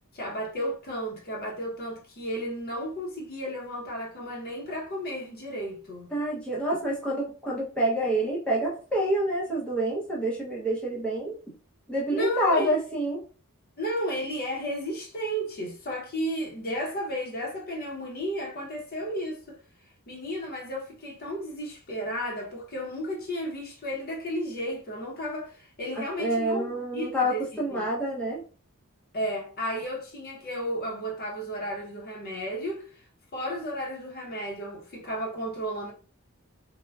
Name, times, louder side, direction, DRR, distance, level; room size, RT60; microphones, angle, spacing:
voice 1, 0.1-6.1 12.1-12.7 13.8-19.6 20.1-26.7 26.9-27.9 29.1-33.0 33.3-35.9, equal, 45° left, 0.7 m, -33 dB
voice 2, 6.1-11.3 11.9-13.2 26.2-28.4, right 1 dB, 5° left, 0.6 m, -27 dB
3.4 x 2.1 x 2.2 m
head